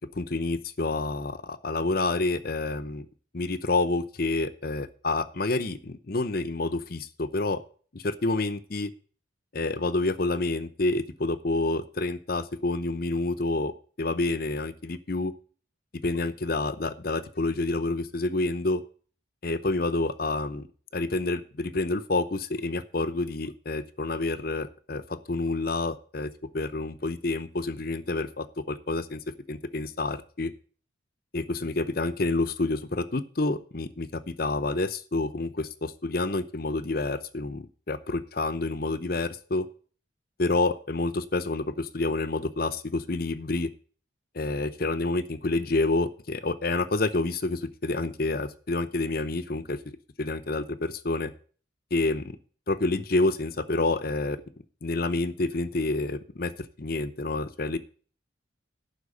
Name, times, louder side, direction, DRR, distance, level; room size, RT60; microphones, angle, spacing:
voice 1, 0.1-3.1 3.3-7.6 7.9-8.9 9.5-15.3 16.0-18.8 19.4-20.7 20.9-29.2 29.5-30.5 31.3-39.7 40.4-43.7 44.3-49.8 50.2-51.3 51.9-52.4 52.7-54.4 54.8-56.5 56.8-57.8, left 2 dB, 50° left, 12 dB, 0.8 m, -28 dB
11.5 x 4.7 x 8.3 m, 0.42 s
head